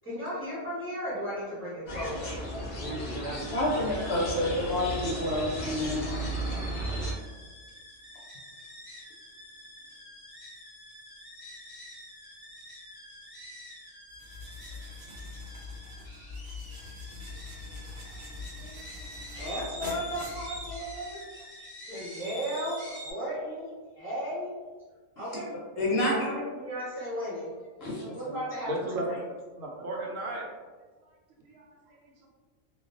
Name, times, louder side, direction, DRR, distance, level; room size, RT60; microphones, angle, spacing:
voice 1, 0.0-2.4 18.6-18.8 19.3-24.5 25.2-25.5 26.2-27.5 27.9-29.2, equal, 10° right, 1.0 m, -35 dB
sound 1, 1.9-7.1, right 1 dB, 90° left, 0.3 m, -34 dB
sound 2, 3.3-23.1, equal, 25° left, 0.6 m, -47 dB
voice 2, 3.4-6.0 25.8-26.1 27.8-28.4, left 1 dB, 65° left, 0.7 m, -29 dB
sound 3, 14.1-21.1, left 2 dB, 60° right, 0.9 m, -43 dB
voice 3, 28.7-29.1 29.6-30.5 31.4-31.7 32.2-32.3, right 1 dB, 90° right, 1.0 m, -34 dB
2.3 x 2.2 x 2.4 m
omnidirectional pair, 1.3 m